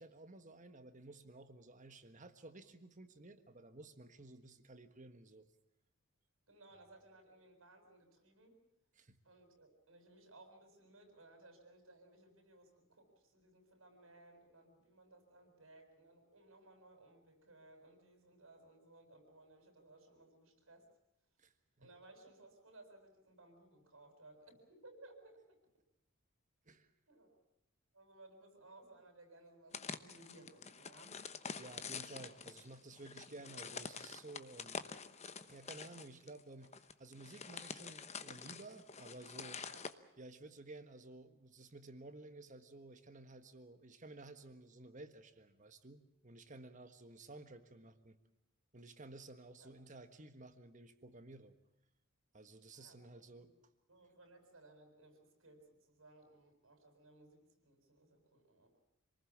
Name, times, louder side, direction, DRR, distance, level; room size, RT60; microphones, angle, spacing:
voice 1, 0.0-5.5 8.9-9.2 21.4-21.9 26.6-26.9 31.6-34.8 35.5-39.6 40.2-48.2 48.7-51.6 52.3-53.5, right 2 dB, 35° right, 9 dB, 1.5 m, -54 dB
voice 2, 6.5-8.6 9.2-20.9 21.8-25.4 27.1-27.4 27.9-31.2 39.7-39.8 49.6-49.7 52.7-53.5 53.9-58.7, right 2 dB, 65° right, 5 dB, 7.5 m, -61 dB
sound 1, 29.7-39.9, left 5 dB, 30° left, 1.0 m, -47 dB
27.0 x 20.0 x 7.4 m, 0.80 s
head